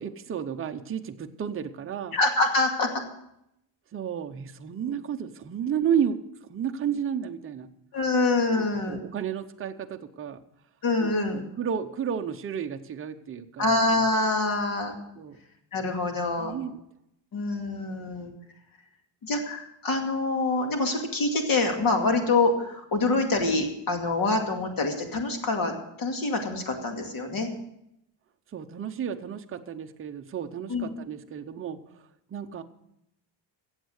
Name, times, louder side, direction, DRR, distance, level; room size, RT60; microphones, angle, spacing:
voice 1, 0.0-2.2 3.9-7.7 8.5-10.4 11.0-13.7 15.1-15.4 16.4-16.8 28.5-32.6, right 8 dB, 30° right, 6 dB, 0.7 m, -32 dB
voice 2, 2.1-2.9 7.9-9.0 10.8-11.4 13.6-15.0 15.7-16.5 17.3-18.3 19.2-25.7 26.0-27.5 30.7-30.9, left 2 dB, 50° left, 4 dB, 2.4 m, -25 dB
15.0 x 8.1 x 6.4 m, 0.79 s
cardioid pair, 170°, 45 cm